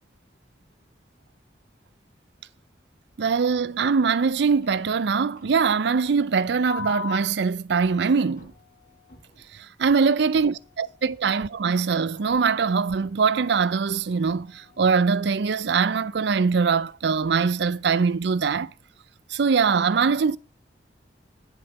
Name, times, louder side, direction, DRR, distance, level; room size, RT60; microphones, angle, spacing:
voice 1, 3.2-8.5 9.8-18.7 19.3-20.4, right 5 dB, 70° right, 0.5 m, -22 dB
sound 1, 4.3-5.1 5.4-5.5 6.7-7.2 8.2-9.5 10.1-11.4 12.1-13.4 14.0-14.9, left 7 dB, 50° left, 4.5 m, -42 dB
10.5 x 5.5 x 5.7 m
head